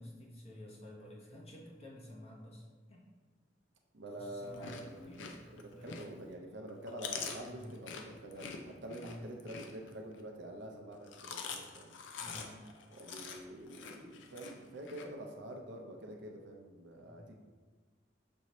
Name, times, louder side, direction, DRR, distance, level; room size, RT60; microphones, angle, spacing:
voice 1, 0.0-3.0 4.1-6.0 7.5-7.7 8.9-9.3 12.2-12.7 17.0-17.3, left 1 dB, 35° left, -3 dB, 0.7 m, -51 dB
voice 2, 3.9-4.9 5.5-11.9 12.9-17.3, right 1 dB, 70° right, 2 dB, 0.6 m, -47 dB
Chewing mastication, 4.4-6.3 6.7-10.2 10.9-15.0, left 5 dB, 85° left, 0.5 m, -45 dB
6.1 x 2.7 x 3.0 m, 1.3 s
head